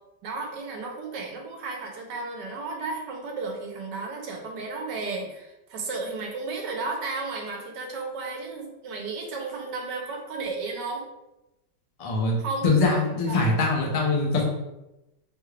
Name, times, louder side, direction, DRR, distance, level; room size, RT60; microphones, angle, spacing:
voice 1, 0.2-11.0 12.4-13.4, right 3 dB, 80° right, 1 dB, 1.3 m, -33 dB
voice 2, 12.0-12.4 12.6-14.4, left 3 dB, 60° left, -2 dB, 0.3 m, -23 dB
3.4 x 2.4 x 3.2 m, 0.95 s
omnidirectional pair, 1.8 m